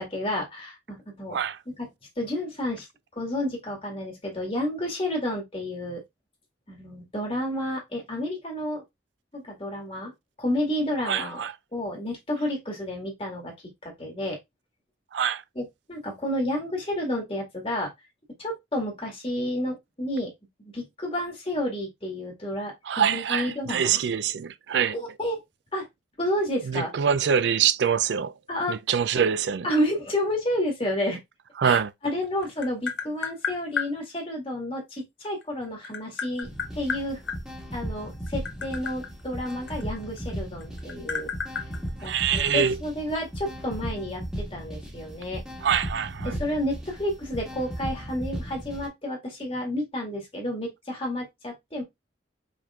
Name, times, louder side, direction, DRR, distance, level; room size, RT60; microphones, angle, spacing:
voice 1, 0.0-1.4 1.7-1.9 2.2-2.9 3.2-6.0 6.7-8.8 9.3-10.1 10.4-11.4 11.7-13.5 13.8-14.4 15.6-17.9 18.4-20.3 20.7-24.0 24.9-25.4 25.7-25.9 26.2-26.9 28.5-28.8 29.6-31.2 31.6-36.5 36.7-37.2 37.7-41.3 42.0-44.2 44.5-45.4 46.2-51.8, left 1 dB, 30° left, 1.8 m, -30 dB
voice 2, 11.1-11.5 15.1-15.4 22.9-24.9 26.7-28.3 28.7-29.7 31.6-31.9 42.0-42.8 45.6-46.4, right 7 dB, 75° right, 0.4 m, -24 dB
Tap, 32.0-33.9 35.2-37.4 38.1-40.3 40.6-42.6, left 6 dB, 85° left, 1.2 m, -32 dB
sound 1, 36.4-48.9, equal, 5° right, 1.6 m, -36 dB
5.2 x 3.6 x 2.4 m
head